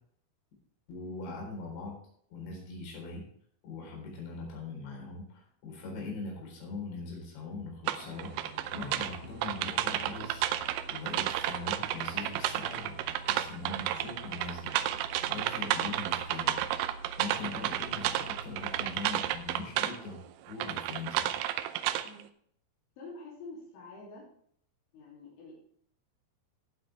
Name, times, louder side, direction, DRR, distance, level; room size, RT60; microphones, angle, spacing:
voice 1, 0.9-2.0 2.3-3.2 3.6-14.7 15.3-16.6 17.2-20.2 20.5-21.4, left 3 dB, 70° left, -1 dB, 6.2 m, -41 dB
sound 1, 7.9-20.0 20.5-22.2, right 13 dB, 90° right, 3.0 m, -32 dB
sound 2, 8.0-20.7, right 1 dB, 25° left, 3.1 m, -48 dB
voice 2, 23.0-24.3 24.9-25.5, left 3 dB, 90° left, -5 dB, 5.5 m, -47 dB
17.5 x 7.6 x 3.4 m, 0.63 s
omnidirectional pair, 5.3 m